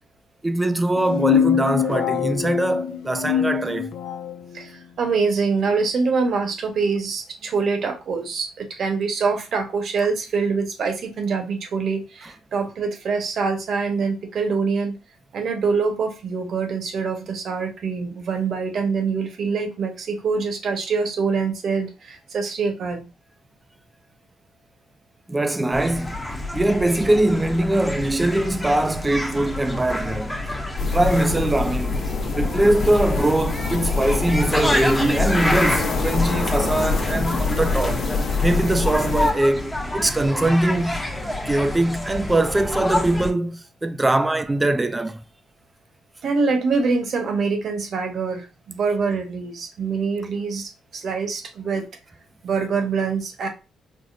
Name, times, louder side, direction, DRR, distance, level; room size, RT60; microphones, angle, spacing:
voice 1, 0.4-3.9 25.3-26.2 26.5-30.4 30.9-32.0 32.3-38.0 38.4-41.0 41.5-45.2, right 1 dB, 15° right, 0.4 m, -22 dB
sound 1, 1.0-4.4, left 9 dB, 85° left, 0.4 m, -23 dB
voice 2, 4.5-15.0 15.3-23.0 46.2-51.8 52.4-53.5, right 4 dB, 60° right, 1.1 m, -24 dB
sound 2, 25.7-43.3, left 1 dB, 10° left, 0.7 m, -28 dB
sound 3, 30.8-39.3, left 4 dB, 60° left, 0.8 m, -25 dB
4.8 x 2.1 x 2.6 m
cardioid pair, 90°, 0 cm